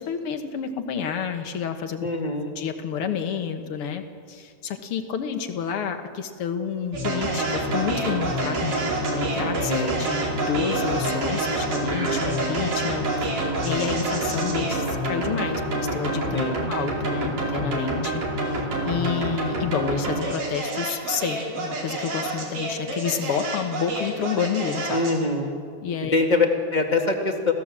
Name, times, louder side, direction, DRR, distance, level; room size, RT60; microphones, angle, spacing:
voice 1, 0.0-2.1 2.6-9.7 10.0-16.4 16.7-25.0 25.8-26.2, left 7 dB, 55° left, 7 dB, 1.8 m, -29 dB
voice 2, 2.0-2.5 9.7-10.0 16.3-16.6 24.9-25.6 26.1-27.5, left 3 dB, 20° left, 2 dB, 1.4 m, -23 dB
sound 1, 6.9-25.2, right 1 dB, 75° right, 5.7 m, -27 dB
28.5 x 16.0 x 7.5 m, 2.2 s
omnidirectional pair, 3.7 m